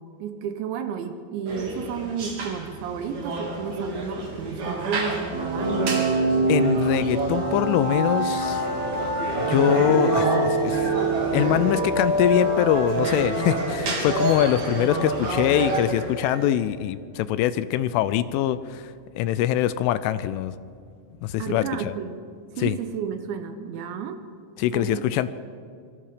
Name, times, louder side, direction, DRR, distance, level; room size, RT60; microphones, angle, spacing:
voice 1, 0.0-6.0 21.4-22.3 22.6-24.2 24.7-25.0, right 7 dB, 75° right, 9 dB, 3.0 m, -32 dB
sound 1, 1.5-16.6, right 2 dB, 40° right, 4.0 m, -30 dB
sound 2, 5.3-13.9, right 2 dB, 20° right, 6.4 m, -25 dB
voice 2, 6.5-8.6 9.5-10.8 11.3-20.5 21.2-21.9 22.6-22.8 24.6-25.3, left 12 dB, 80° left, 14 dB, 3.0 m, -23 dB
25.5 x 23.0 x 5.1 m, 2.3 s
omnidirectional pair, 5.8 m